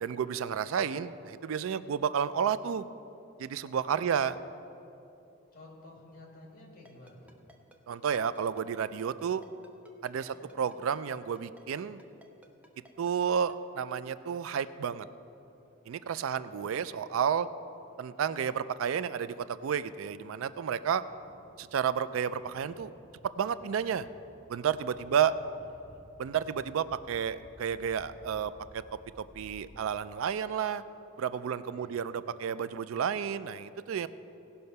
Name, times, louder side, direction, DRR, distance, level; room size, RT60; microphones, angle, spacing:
voice 1, 0.0-2.8 3.4-4.4 7.9-9.4 10.0-12.0 13.0-15.1 15.9-17.5 18.0-21.0 21.6-22.9 23.4-24.1 24.5-25.3 26.2-28.8 29.2-30.8 31.2-34.1, right 7 dB, 80° right, 15 dB, 0.3 m, -31 dB
voice 2, 5.5-7.4 10.1-10.4 16.3-16.6 25.0-26.0 26.3-26.6 31.5-32.0, left 1 dB, 40° left, -1 dB, 2.2 m, -54 dB
Ringtone, 6.9-13.5, equal, 5° right, 0.5 m, -56 dB
sound 1, 15.2-30.3, equal, 50° right, 2.8 m, -59 dB
17.0 x 5.7 x 5.4 m, 2.9 s
head